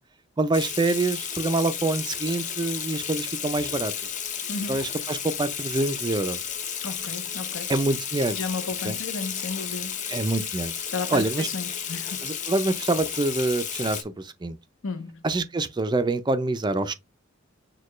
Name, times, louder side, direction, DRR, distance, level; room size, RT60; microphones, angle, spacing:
voice 1, 0.4-3.9 4.7-6.4 7.7-8.4 8.8-9.0 10.1-10.7 11.1-11.5 12.2-14.6 15.2-16.9, right 2 dB, 20° right, 0.4 m, -26 dB
Water tap faucet / Sink (filling or washing), 0.5-14.0, left 8 dB, 35° left, 0.6 m, -33 dB
voice 2, 4.5-4.8 6.8-7.7 8.3-10.0 10.9-12.3 14.8-15.3, left 4 dB, 70° left, 0.8 m, -33 dB
6.5 x 2.3 x 3.0 m
head